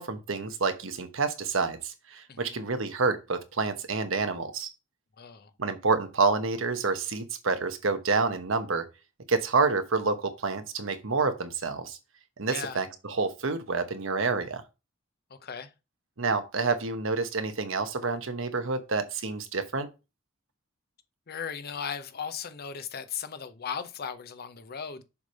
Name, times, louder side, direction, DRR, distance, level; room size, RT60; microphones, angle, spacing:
voice 1, 0.0-4.7 5.6-8.9 9.3-12.0 12.4-14.6 16.2-19.9, right 4 dB, 70° right, 1.0 m, -28 dB
voice 2, 2.3-2.6 5.2-5.5 12.5-12.8 15.3-15.7 21.3-25.0, left 7 dB, 50° left, 0.7 m, -37 dB
7.1 x 3.3 x 5.4 m
head